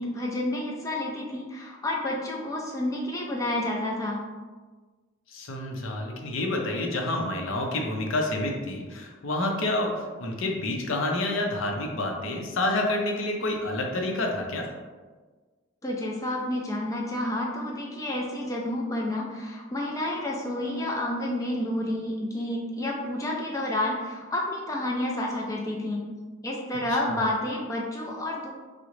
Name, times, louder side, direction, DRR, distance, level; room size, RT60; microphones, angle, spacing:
voice 1, 0.0-4.2 15.8-26.0 26.4-28.5, left 1 dB, 15° left, -2 dB, 0.3 m, -30 dB
voice 2, 5.3-14.7 27.1-27.2, left 2 dB, 75° left, 2 dB, 0.5 m, -28 dB
3.7 x 2.0 x 3.1 m, 1.4 s
head